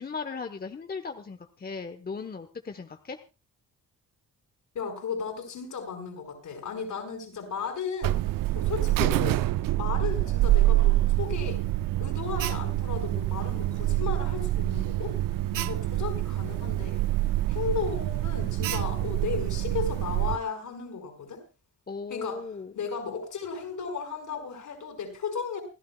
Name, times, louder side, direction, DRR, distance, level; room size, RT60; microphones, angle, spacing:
voice 1, 0.0-3.2 15.5-15.8 21.9-22.7, left 5 dB, 30° left, 1.1 m, -37 dB
voice 2, 4.8-8.2 8.5-9.5 9.8-11.6 12.0-15.2 15.7-17.0 17.5-21.4 22.1-22.4 22.7-25.6, left 5 dB, 65° left, 5.4 m, -35 dB
Alarm, 8.0-20.4, right 15 dB, 80° right, 0.6 m, -26 dB
28.0 x 11.5 x 2.3 m
cardioid pair, 85°, 33 cm